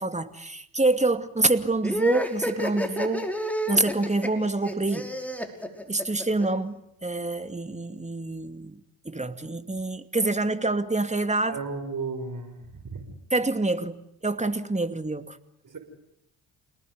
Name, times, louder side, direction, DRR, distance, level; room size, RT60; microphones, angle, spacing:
voice 1, 0.0-3.3 3.7-5.1 5.9-8.8 9.0-11.6 13.3-15.4, right 2 dB, 15° right, 9 dB, 2.5 m, -26 dB
sound 1, 1.8-6.5, equal, 5° left, 5.4 m, -30 dB
voice 2, 11.5-13.0 15.6-15.8, right 4 dB, 40° right, 5 dB, 6.3 m, -34 dB
29.5 x 19.5 x 9.9 m, 0.78 s
hypercardioid pair, 55°, 50 cm